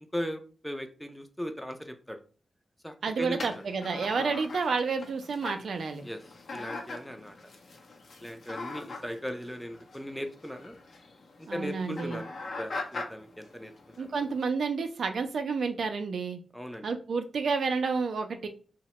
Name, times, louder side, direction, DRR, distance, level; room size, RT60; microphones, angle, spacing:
voice 1, 0.1-2.2 2.8-3.4 6.0-6.2 6.5-7.4 8.2-10.7 11.5-12.3 12.6-13.7 14.0-14.2 16.5-16.9, equal, 5° left, 6 dB, 0.4 m, -38 dB
voice 2, 3.0-6.1 11.5-12.2 14.0-16.4 16.8-18.5, right 4 dB, 80° right, 6 dB, 0.4 m, -30 dB
sound 1, 3.4-14.4, left 3 dB, 65° left, 0.5 m, -42 dB
3.0 x 2.1 x 2.8 m, 0.36 s
wide cardioid pair, 95°, 0 cm